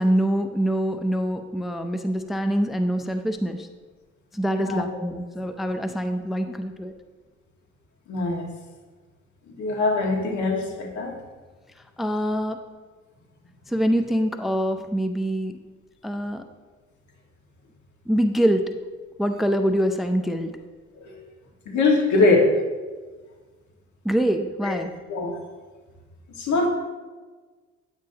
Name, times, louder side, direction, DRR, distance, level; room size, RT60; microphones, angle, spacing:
voice 1, 0.0-3.7 4.3-6.9 12.0-12.6 13.7-15.6 16.0-16.4 18.1-18.7 19.2-20.6 24.0-24.9, equal, ahead, 7 dB, 0.5 m, -24 dB
voice 2, 8.1-8.5 9.5-11.1 21.0-21.2 21.7-22.5 24.6-24.8 25.1-25.4 26.4-26.7, left 3 dB, 70° left, 0 dB, 1.8 m, -22 dB
9.6 x 8.1 x 2.8 m, 1.3 s
cardioid pair, 90°, 30 cm